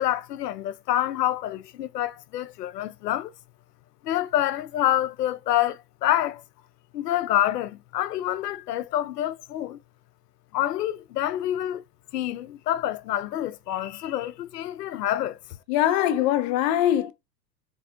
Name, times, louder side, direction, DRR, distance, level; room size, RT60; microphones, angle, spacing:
voice 1, 0.0-3.3 4.0-6.4 6.9-9.8 10.5-11.8 12.1-15.4, left 12 dB, 75° left, 0.6 m, -27 dB
voice 2, 15.7-17.1, left 12 dB, 30° left, 0.4 m, -22 dB
4.1 x 3.3 x 2.5 m
figure-of-eight pair, 90°, 49 cm